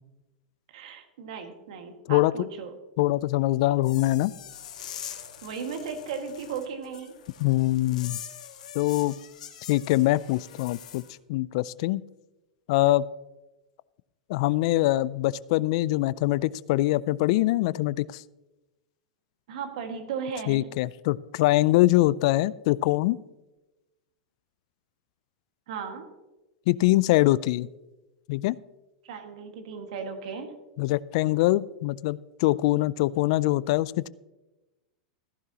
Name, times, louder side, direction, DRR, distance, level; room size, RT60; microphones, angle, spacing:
voice 1, 0.7-2.7 5.4-7.2 19.5-20.7 25.7-26.1 29.0-30.5, right 6 dB, 70° right, 5 dB, 1.8 m, -36 dB
voice 2, 3.0-4.3 7.4-8.2 8.7-9.2 9.7-11.0 11.3-12.0 12.7-13.0 14.3-18.2 20.5-23.2 26.7-27.7 28.3-28.6 30.8-34.1, left 17 dB, 60° left, 20 dB, 0.3 m, -23 dB
sound 1, 3.8-11.1, left 9 dB, 80° left, 1.5 m, -43 dB
14.5 x 11.0 x 2.9 m, 1.1 s
hypercardioid pair, 115°, 4 cm